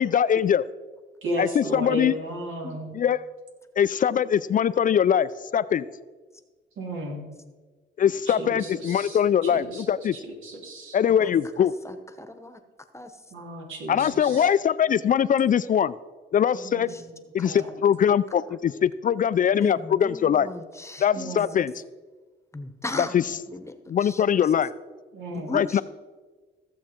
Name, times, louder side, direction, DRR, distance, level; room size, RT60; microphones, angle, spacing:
voice 1, 0.0-0.6 1.4-2.1 2.9-3.2 3.8-5.9 8.0-10.1 10.9-11.7 13.9-15.9 16.3-16.9 17.3-20.5 21.0-21.7 23.0-23.2 23.9-24.7 25.5-25.8, left 8 dB, 45° left, 16 dB, 0.4 m, -22 dB
voice 2, 1.2-2.9 6.8-7.2 8.3-9.9 10.1-11.0 13.3-14.5 16.6-17.2 17.5-17.7 21.1-21.6 25.1-25.6, right 1 dB, 75° right, -1 dB, 3.2 m, -34 dB
voice 3, 11.6-12.6 12.9-13.1 16.5-17.0 17.4-17.5 19.5-21.4 22.5-24.2 25.3-25.8, left 2 dB, 15° left, 9 dB, 1.0 m, -37 dB
15.5 x 7.3 x 4.4 m, 1.3 s
cardioid pair, 90°, 20 cm